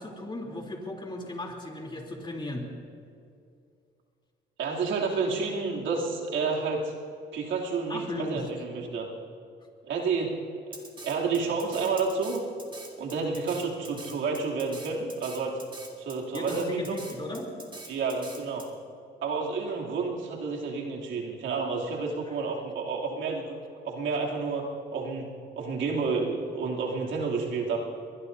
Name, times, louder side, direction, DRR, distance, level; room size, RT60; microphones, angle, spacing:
voice 1, 0.0-2.7 7.9-8.5 16.3-17.5 22.3-22.4, left 1 dB, 25° left, 0 dB, 3.2 m, -36 dB
voice 2, 4.6-6.9 7.3-9.1 9.8-10.4 11.0-12.4 13.0-15.6 16.0-17.0 17.9-18.6 19.2-23.5 23.8-24.7 24.9-25.3 25.6-27.8, right 4 dB, 75° right, -2 dB, 2.9 m, -30 dB
Drum kit, 10.7-18.7, right 2 dB, 25° right, 2.6 m, -44 dB
22.5 x 21.0 x 2.7 m, 2.4 s
cardioid pair, 90°, 20 cm